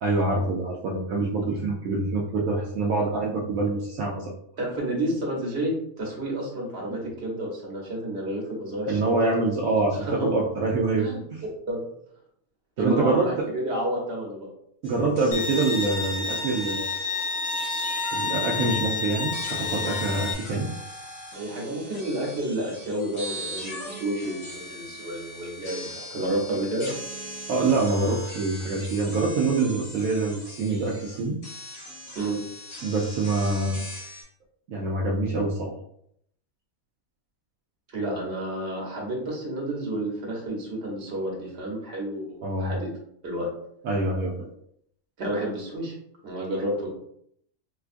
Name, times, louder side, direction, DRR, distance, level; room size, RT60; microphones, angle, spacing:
voice 1, 0.0-4.3 6.9-7.0 8.9-11.1 12.8-13.5 14.8-16.9 18.1-20.7 27.5-31.4 32.8-33.8 34.7-35.7 42.4-42.7 43.8-44.3, right 3 dB, 75° right, -3 dB, 1.0 m, -25 dB
voice 2, 4.6-9.1 9.9-10.3 11.0-11.2 11.7-11.8 12.8-14.5 21.3-26.9 32.1-32.4 37.9-42.9 43.2-43.5 45.2-45.9 46.2-46.9, right 1 dB, 50° right, -2 dB, 1.3 m, -30 dB
sound 1, 14.8-18.9 19.3-34.2, equal, 75° left, 1.5 m, -40 dB
Bowed string instrument, 15.3-20.3, left 4 dB, 55° left, 0.6 m, -29 dB
4.5 x 2.2 x 2.5 m, 0.71 s
omnidirectional pair, 1.4 m